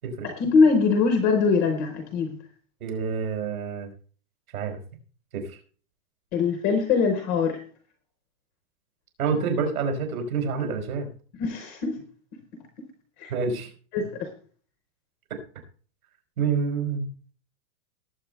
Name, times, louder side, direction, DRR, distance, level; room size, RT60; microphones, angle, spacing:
voice 1, 0.2-2.4 6.3-7.6 11.4-12.0 13.2-13.3 13.9-14.3, left 5 dB, 10° left, 6 dB, 0.4 m, -22 dB
voice 2, 2.8-3.9 4.5-4.8 5.3-5.4 9.2-11.1 13.3-13.7 15.3-15.4 16.4-17.1, right 5 dB, 75° right, 5 dB, 5.0 m, -27 dB
19.0 x 8.2 x 3.3 m, 0.42 s
supercardioid pair, 170°, 44 cm